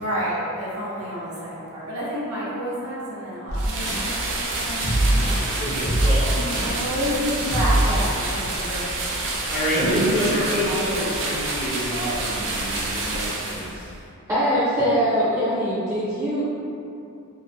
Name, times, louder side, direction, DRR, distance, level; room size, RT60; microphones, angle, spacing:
voice 1, 0.0-4.9 6.6-9.6 10.6-10.8, equal, 80° right, -8 dB, 0.8 m, -30 dB
sound 1, 3.5-4.1 4.8-5.4 5.8-6.7 7.5-8.1, right 1 dB, 80° left, 0.7 m, -22 dB
sound 2, 3.5-13.9, right 2 dB, 60° right, 0.4 m, -28 dB
voice 2, 4.8-6.8 9.4-13.6, equal, 60° left, -12 dB, 1.0 m, -27 dB
voice 3, 14.3-16.6, equal, 15° right, -12 dB, 0.6 m, -22 dB
2.8 x 2.1 x 2.5 m, 2.6 s
head